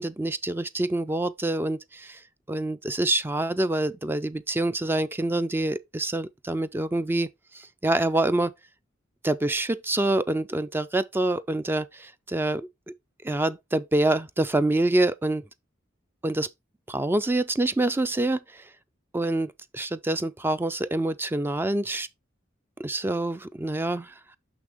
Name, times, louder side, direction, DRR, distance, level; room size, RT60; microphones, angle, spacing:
voice 1, 0.0-2.2 2.5-7.3 7.5-8.5 9.2-12.7 13.2-15.4 16.2-16.5 16.9-18.6 19.1-22.1 22.8-24.1, right 2 dB, 10° right, 0.3 m, -26 dB
6.1 x 6.1 x 3.4 m
head